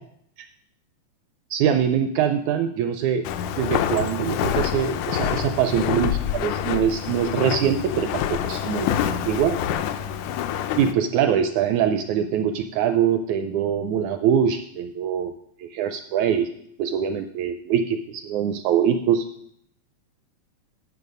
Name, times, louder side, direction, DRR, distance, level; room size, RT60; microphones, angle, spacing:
voice 1, 1.5-3.2 3.6-9.6 10.8-15.3 15.6-16.5 16.8-19.3, right 8 dB, 80° right, 8 dB, 1.7 m, -23 dB
Walk footsteps, 3.2-10.9, left 9 dB, 80° left, 2.0 m, -26 dB
10.5 x 6.7 x 5.4 m, 0.71 s
omnidirectional pair, 3.8 m